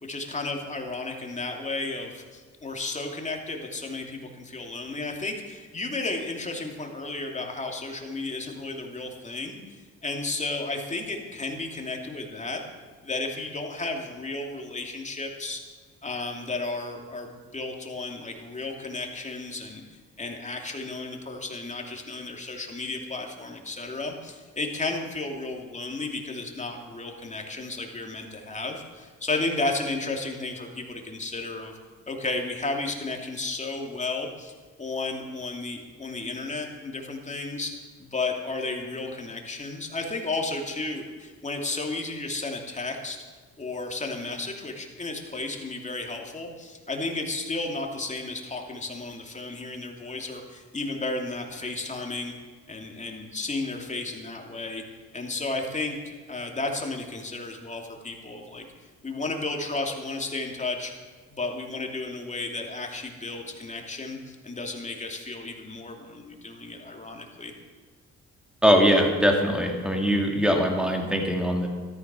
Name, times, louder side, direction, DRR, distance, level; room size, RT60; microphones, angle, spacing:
voice 1, 0.0-9.6 10.0-12.6 13.0-15.6 16.0-19.8 20.2-31.7 32.1-37.7 38.0-43.2 43.6-52.3 52.7-54.8 55.1-58.6 59.0-60.9 61.3-67.5, left 3 dB, 25° left, 2 dB, 2.8 m, -33 dB
voice 2, 68.6-71.7, equal, 5° right, 1 dB, 3.0 m, -22 dB
13.5 x 13.5 x 6.2 m, 1.4 s
cardioid pair, 90°, 30 cm